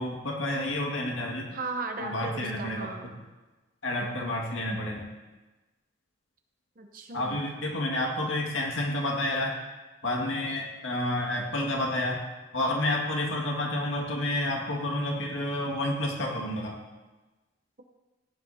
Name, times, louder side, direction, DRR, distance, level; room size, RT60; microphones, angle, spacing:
voice 1, 0.0-1.5 2.0-2.9 3.8-5.1 7.1-9.5 10.0-12.2 12.5-16.8, left 1 dB, 80° left, 0 dB, 2.0 m, -29 dB
voice 2, 1.5-3.2 6.8-7.4, right 3 dB, 45° right, 4 dB, 0.8 m, -36 dB
16.0 x 10.5 x 2.8 m, 1.2 s
head